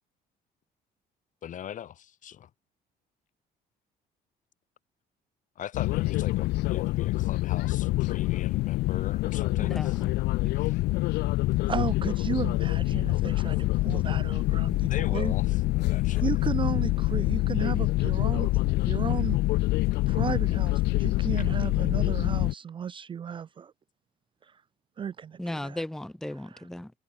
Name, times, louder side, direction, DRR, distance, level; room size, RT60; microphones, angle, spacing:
voice 1, 1.4-2.5 5.6-10.0 10.5-10.8 13.0-13.2 14.9-16.3, left 10 dB, 50° left, 1.1 m, -40 dB
sound 1, 5.7-22.5, left 19 dB, 80° left, 0.5 m, -26 dB
voice 2, 9.6-10.1 10.4-10.5 25.4-26.9, left 1 dB, 5° left, 0.6 m, -36 dB
voice 3, 11.7-15.3 16.2-19.4 20.1-23.7 24.4-24.6 25.0-25.8, right 7 dB, 30° right, 0.4 m, -34 dB
cardioid pair, 110°, 17 cm